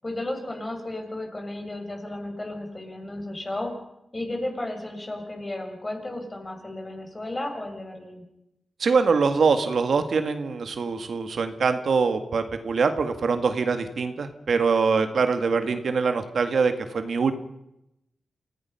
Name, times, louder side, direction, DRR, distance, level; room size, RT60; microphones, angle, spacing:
voice 1, 0.0-3.7 4.1-8.2, left 1 dB, 25° left, 3 dB, 6.4 m, -33 dB
voice 2, 8.8-17.3, right 5 dB, 70° right, 8 dB, 1.9 m, -23 dB
28.0 x 16.5 x 5.7 m, 0.84 s
wide cardioid pair, 90°, 0 cm